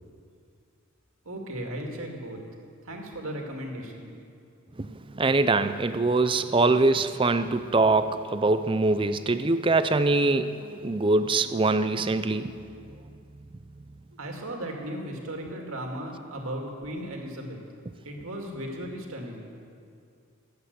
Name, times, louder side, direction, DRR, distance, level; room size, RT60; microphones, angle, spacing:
voice 1, 1.3-2.4 2.8-4.1 14.2-17.6 18.0-19.5, right 1 dB, 70° right, 2.1 m, -36 dB
voice 2, 4.8-13.0, right 3 dB, 25° right, 0.4 m, -24 dB
19.0 x 8.1 x 8.0 m
head